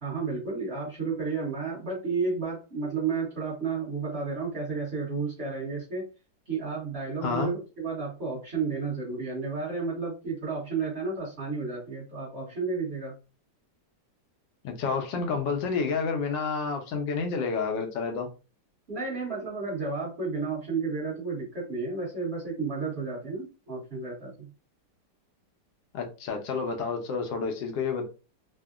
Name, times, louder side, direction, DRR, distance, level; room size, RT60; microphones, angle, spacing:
voice 1, 0.0-6.1 6.5-13.1 18.9-24.5, right 4 dB, 40° right, 1.2 m, -32 dB
voice 2, 14.6-18.3 25.9-28.1, left 5 dB, 80° left, 1.3 m, -29 dB
3.5 x 2.1 x 2.3 m
omnidirectional pair, 2.0 m